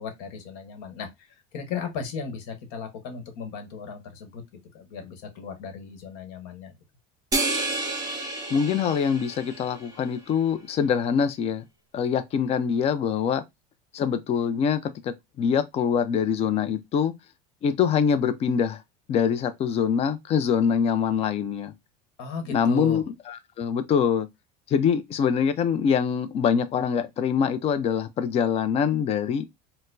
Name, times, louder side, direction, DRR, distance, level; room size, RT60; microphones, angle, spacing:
voice 1, 0.0-4.4 4.7-6.7 22.2-23.0, left 5 dB, 70° left, 1.1 m, -36 dB
sound 1, 7.3-10.0, right 2 dB, 15° right, 1.1 m, -30 dB
voice 2, 8.5-11.6 11.9-13.4 13.9-17.1 17.6-18.8 19.1-21.7 22.5-24.3 24.7-29.5, left 7 dB, 30° left, 0.4 m, -24 dB
4.2 x 2.1 x 2.6 m
supercardioid pair, 130°, 20 cm